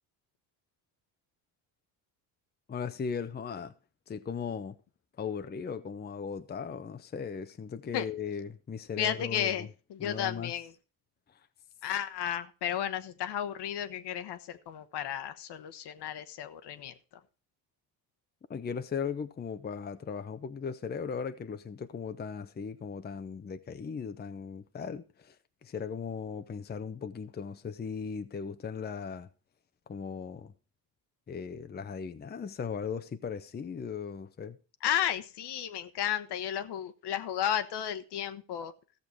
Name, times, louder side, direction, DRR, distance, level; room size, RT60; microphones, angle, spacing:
voice 1, 2.7-3.7 4.1-4.8 5.2-9.7 10.0-10.5 18.5-25.4 25.6-29.3 29.9-30.5 31.3-34.6, left 6 dB, 20° left, 0.7 m, -37 dB
voice 2, 9.0-10.7 11.8-16.9 34.8-38.7, left 10 dB, 60° left, 1.2 m, -33 dB
14.5 x 6.8 x 4.5 m
supercardioid pair, 85°, 46 cm